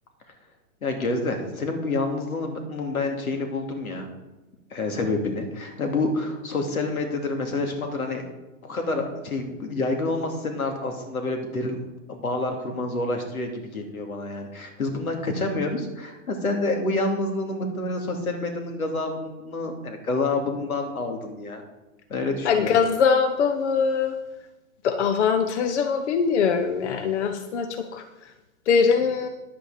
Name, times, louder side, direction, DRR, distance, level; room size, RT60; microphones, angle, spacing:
voice 1, 0.8-4.1 4.7-8.2 8.6-21.6 22.1-22.7, left 2 dB, 90° left, 3 dB, 2.7 m, -28 dB
voice 2, 22.4-24.2 24.8-28.3 28.7-29.3, left 6 dB, 55° left, 7 dB, 1.1 m, -22 dB
10.5 x 8.7 x 5.0 m, 1.1 s
hypercardioid pair, 140°, 41 cm